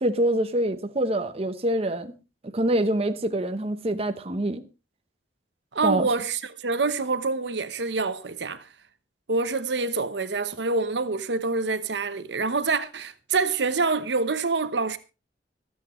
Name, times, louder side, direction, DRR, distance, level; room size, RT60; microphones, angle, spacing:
voice 1, 0.0-2.1 2.5-4.6 5.8-6.1, right 1 dB, 35° right, 0.9 m, -25 dB
voice 2, 5.7-8.7 9.3-15.0, right 3 dB, 80° right, 0.9 m, -26 dB
25.0 x 8.4 x 3.1 m
head